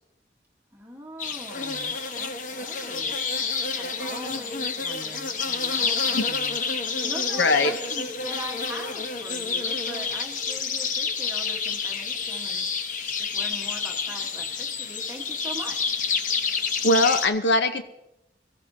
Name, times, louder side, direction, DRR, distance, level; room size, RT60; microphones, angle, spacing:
voice 1, 0.7-3.2 3.7-6.6 6.8-12.7 13.2-16.0, equal, 10° right, -1 dB, 1.2 m, -41 dB
sound 1, 1.2-17.3, left 5 dB, 45° left, 0.9 m, -29 dB
voice 2, 7.4-7.7 16.8-17.8, left 2 dB, 85° left, 8 dB, 0.8 m, -20 dB
24.5 x 14.5 x 2.7 m, 0.86 s
head